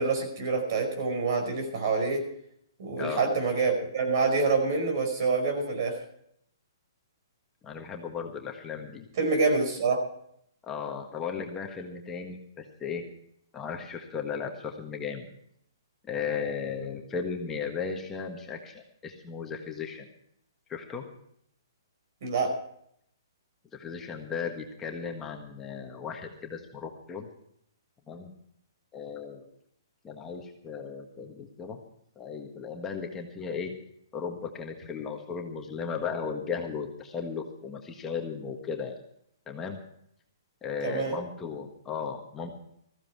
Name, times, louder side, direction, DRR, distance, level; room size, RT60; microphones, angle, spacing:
voice 1, 0.0-2.2 2.8-5.9 9.2-10.0 22.2-22.5 40.8-41.2, right 4 dB, 55° right, 5 dB, 5.1 m, -26 dB
voice 2, 7.6-9.1 10.7-13.0 13.5-15.3 16.1-20.0 20.7-21.0 23.7-27.3 28.1-28.3 28.9-29.4 30.0-31.8 32.1-33.7 34.1-38.9 39.5-39.8 40.6-42.5, left 6 dB, 15° left, 2 dB, 1.5 m, -36 dB
15.0 x 14.5 x 4.7 m, 0.70 s
hypercardioid pair, 145°, 2 cm